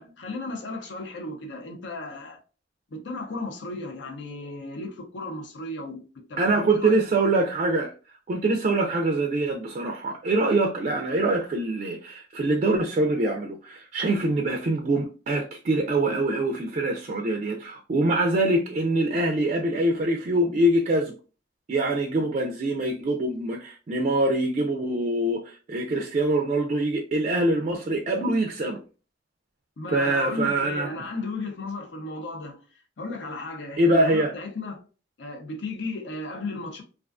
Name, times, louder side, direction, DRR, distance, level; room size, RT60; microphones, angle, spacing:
voice 1, 0.0-2.4 2.9-7.0 29.8-32.6 33.0-34.8 35.2-36.8, left 2 dB, 75° left, 0.6 m, -35 dB
voice 2, 6.4-7.9 8.3-21.1 21.7-28.8 29.9-30.9 33.8-34.3, right 2 dB, 40° right, 0.3 m, -24 dB
2.4 x 2.3 x 2.3 m
head